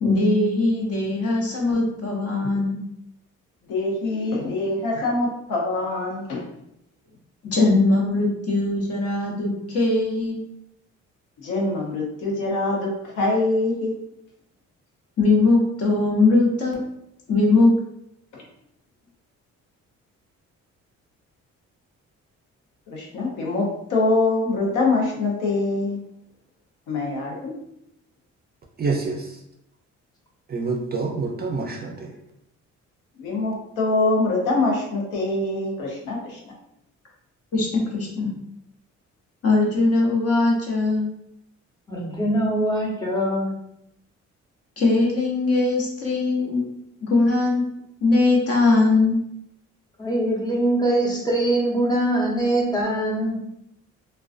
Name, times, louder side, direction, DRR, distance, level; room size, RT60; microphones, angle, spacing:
voice 1, 0.0-2.8 7.5-10.4 15.2-16.8 17.3-17.7 37.5-38.3 39.4-41.1 44.8-46.6 47.0-47.6 48.0-49.2, left 3 dB, 50° left, -2 dB, 0.8 m, -20 dB
voice 2, 3.7-6.4 11.4-13.9 18.3-18.4 22.9-26.0 26.9-27.5 33.2-36.4, left 2 dB, 90° left, -2 dB, 0.7 m, -24 dB
voice 3, 28.8-29.4 30.5-32.1, right 4 dB, 35° right, 1 dB, 0.4 m, -27 dB
voice 4, 41.9-43.5 50.0-53.4, right 1 dB, 15° left, -4 dB, 0.8 m, -23 dB
2.4 x 2.2 x 2.4 m, 0.79 s
cardioid pair, 90°, 30 cm